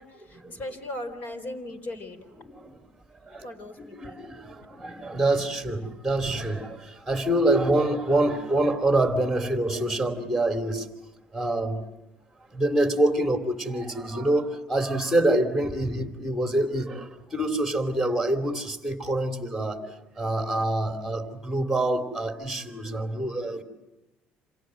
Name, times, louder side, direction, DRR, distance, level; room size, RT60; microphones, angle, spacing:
voice 1, 0.0-2.2 3.4-4.2, left 1 dB, 50° left, 4.3 m, -38 dB
voice 2, 3.8-10.9 11.3-11.8 12.5-23.6, right 1 dB, ahead, 3.0 m, -26 dB
28.0 x 27.5 x 7.7 m
cardioid pair, 120°, 4 cm